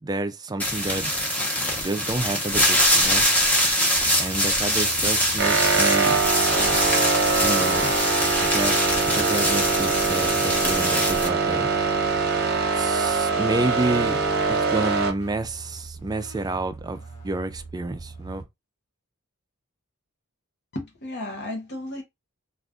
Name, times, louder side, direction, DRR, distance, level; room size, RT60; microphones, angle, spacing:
voice 1, 0.0-1.1 1.8-3.3 4.2-6.2 7.4-7.9 8.4-11.7 12.7-14.2 14.5-17.0 17.2-18.4, right 2 dB, 20° right, 0.4 m, -29 dB
sound 1, 0.6-11.3, equal, 5° left, 0.9 m, -23 dB
sound 2, 3.9-18.4, right 3 dB, 70° left, 1.3 m, -42 dB
sound 3, 5.4-15.1, right 4 dB, 45° right, 0.8 m, -23 dB
voice 2, 20.7-22.0, left 1 dB, 50° left, 0.9 m, -33 dB
2.5 x 2.4 x 3.5 m
head